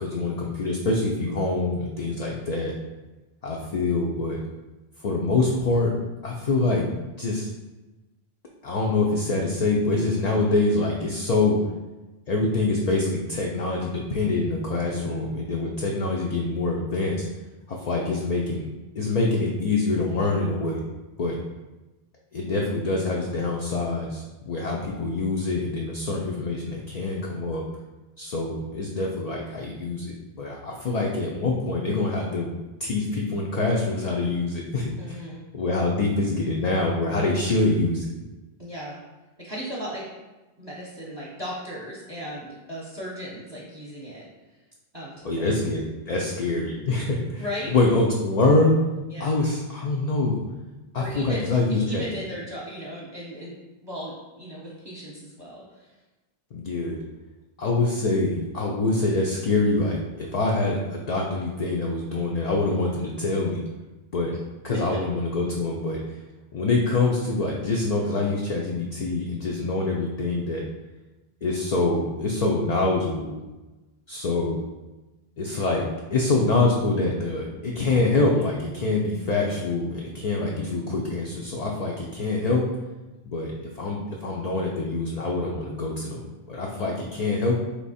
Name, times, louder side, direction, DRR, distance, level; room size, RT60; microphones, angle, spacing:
voice 1, 0.0-2.7 3.4-4.4 5.0-5.9 6.2-6.9 7.2-7.5 8.6-11.6 12.3-17.3 17.7-18.7 19.0-20.8 21.2-21.4 22.3-27.6 28.2-32.5 32.8-35.2 35.5-38.1 45.2-48.7 49.2-50.4 50.9-52.0 56.5-57.0 57.6-63.6 64.1-64.3 64.6-66.0 66.5-70.6 71.4-73.3 74.1-74.6 75.4-75.9 76.1-82.6 83.2-86.2 86.5-87.6, left 3 dB, 50° left, -2 dB, 0.5 m, -25 dB
voice 2, 14.7-15.1 35.0-35.4 38.6-39.0 39.4-40.1 40.6-44.2 44.5-44.6 44.9-45.6 47.4-47.7 49.1-49.3 51.0-56.0 64.7-65.0, equal, 25° right, -5 dB, 0.8 m, -36 dB
3.4 x 2.9 x 4.1 m, 1.1 s
omnidirectional pair, 1.0 m